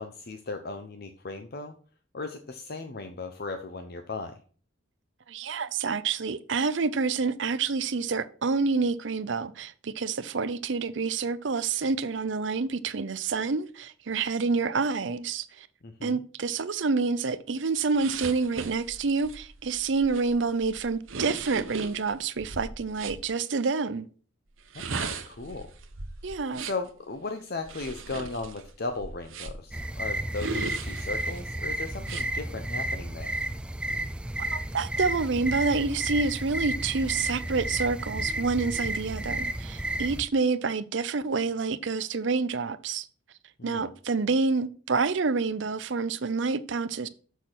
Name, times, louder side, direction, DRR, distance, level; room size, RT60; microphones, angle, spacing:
voice 1, 0.0-1.7 2.1-4.4 15.8-16.2 24.7-25.7 26.6-33.3 43.6-43.9, left 3 dB, 55° left, 0.7 m, -37 dB
voice 2, 5.3-15.7 16.0-24.1 26.2-26.7 34.4-43.1 43.6-47.1, right 4 dB, 65° right, 0.6 m, -28 dB
sound 1, 17.9-23.2 24.6-26.9 27.6-29.7 30.3-31.4 32.0-32.3, right 4 dB, 90° right, 1.0 m, -38 dB
sound 2, 29.7-40.2, right 1 dB, 5° right, 0.3 m, -32 dB
7.0 x 6.4 x 6.0 m
head